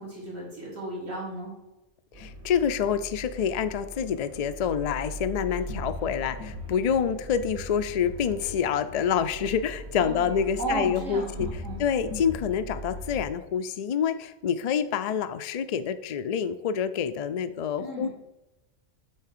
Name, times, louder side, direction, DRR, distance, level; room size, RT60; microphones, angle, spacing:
voice 1, 0.0-1.6 10.0-11.8 17.8-18.1, right 1 dB, 85° right, -5 dB, 3.4 m, -34 dB
sound 1, 2.1-13.3, equal, 60° right, 1.5 m, -40 dB
voice 2, 2.2-11.5 11.8-18.1, left 7 dB, 75° left, 10 dB, 0.3 m, -27 dB
8.6 x 3.5 x 6.6 m, 0.97 s
omnidirectional pair, 1.3 m